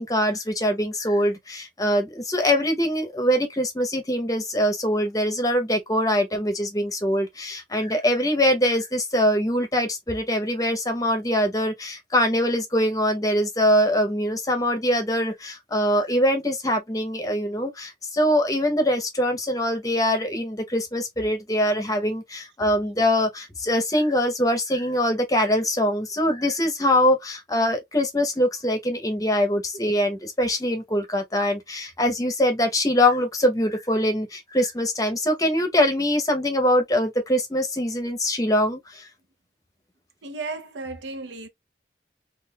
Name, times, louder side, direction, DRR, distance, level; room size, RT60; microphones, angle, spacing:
voice 1, 0.0-39.1, equal, 20° left, 0.8 m, -23 dB
voice 2, 40.2-41.5, right 3 dB, 75° right, 0.7 m, -34 dB
3.7 x 2.5 x 2.2 m
head